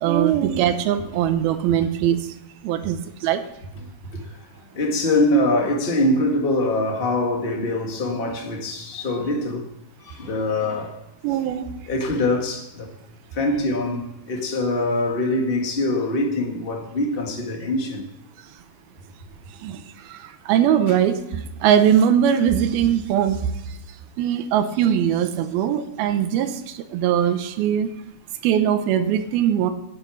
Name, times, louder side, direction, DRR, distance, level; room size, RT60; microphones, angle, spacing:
voice 1, 0.0-2.2 2.6-3.4 11.2-11.7 19.6-23.5 24.2-27.9 28.4-29.7, right 9 dB, 90° right, 2.8 m, -21 dB
voice 2, 4.7-9.6 10.0-11.0 11.9-12.9 13.3-18.0, left 1 dB, 40° left, 0.7 m, -23 dB
10.0 x 8.4 x 7.0 m
omnidirectional pair, 4.2 m